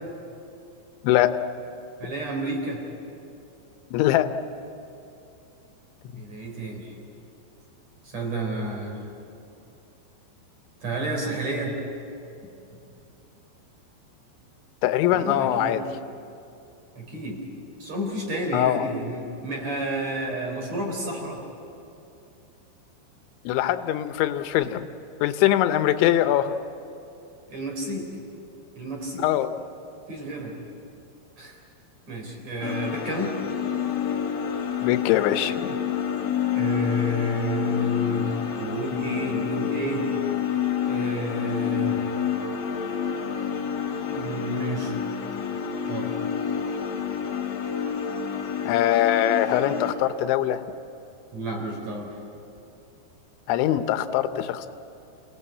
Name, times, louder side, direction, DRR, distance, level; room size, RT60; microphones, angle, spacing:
voice 1, 1.0-1.4 3.9-4.3 6.1-6.2 14.8-15.8 18.5-18.8 23.5-24.9 25.2-26.6 29.2-29.5 34.8-35.8 48.7-50.6 53.5-54.7, left 12 dB, 90° left, 10 dB, 3.2 m, -22 dB
voice 2, 2.0-2.8 6.1-6.9 8.0-9.0 10.8-11.8 15.1-15.8 16.9-17.4 17.8-21.4 27.5-28.1 28.8-29.3 30.1-30.5 31.4-31.6 32.1-33.3 36.5-40.1 40.8-42.1 44.1-44.9 45.9-46.1 51.3-52.2, right 1 dB, 40° right, 0 dB, 4.8 m, -30 dB
sound 1, 32.6-49.9, left 8 dB, 65° left, 3.4 m, -28 dB
28.5 x 18.5 x 8.4 m, 2.7 s
omnidirectional pair, 5.2 m